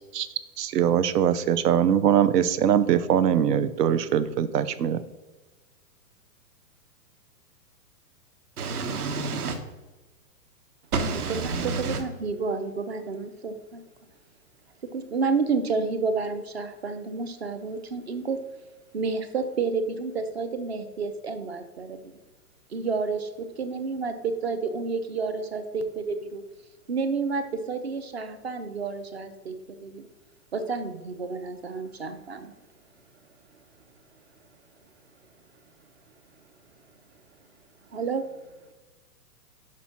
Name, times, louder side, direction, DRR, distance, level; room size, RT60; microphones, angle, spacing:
voice 1, 0.6-5.0, right 9 dB, 85° right, 13 dB, 0.8 m, -22 dB
voice 2, 8.6-9.6 10.9-12.0, right 4 dB, 65° right, 6 dB, 1.3 m, -29 dB
voice 3, 11.0-13.8 14.9-18.4 18.9-22.2 22.7-26.4 26.9-30.1 30.5-32.5 37.9-38.2, right 4 dB, 45° right, 9 dB, 0.5 m, -30 dB
6.0 x 5.2 x 5.7 m, 1.2 s
hypercardioid pair, 175°, 47 cm